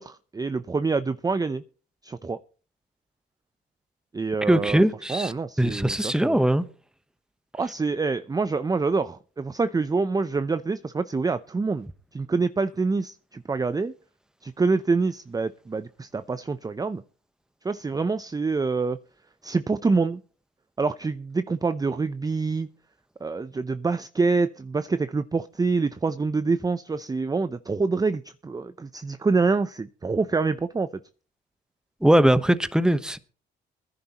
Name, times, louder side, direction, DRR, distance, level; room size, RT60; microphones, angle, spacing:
voice 1, 0.0-1.6 2.0-2.4 4.1-4.8 5.1-6.4 7.5-13.9 14.4-17.0 17.6-19.0 19.4-20.2 20.8-22.7 23.2-31.0, right 4 dB, 20° right, 0.6 m, -26 dB
voice 2, 4.5-5.3 5.6-6.6 32.0-33.2, right 1 dB, 5° right, 1.0 m, -20 dB
21.0 x 10.5 x 3.0 m
supercardioid pair, 70°, 19 cm